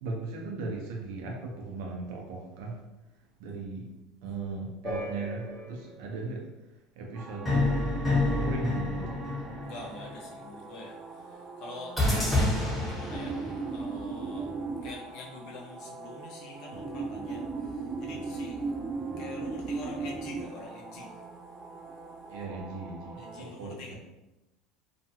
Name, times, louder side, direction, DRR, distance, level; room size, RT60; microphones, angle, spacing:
voice 1, 0.0-2.8 3.4-3.9 4.2-6.5 7.0-9.2 22.3-24.0, right 3 dB, 80° right, 0 dB, 0.6 m, -37 dB
sound 1, 4.8-5.9 7.5-10.1 12.0-13.7, left 2 dB, 15° left, 1.2 m, -29 dB
sound 2, 7.1-23.4, right 4 dB, 30° right, 0.3 m, -39 dB
voice 2, 9.6-11.0 11.6-12.5 12.8-13.4 13.7-14.5 14.8-17.4 18.0-18.6 19.2-21.1 23.2-24.0, left 3 dB, 65° left, 0 dB, 0.6 m, -45 dB
2.4 x 2.2 x 2.8 m, 0.99 s
supercardioid pair, 110°, 0 cm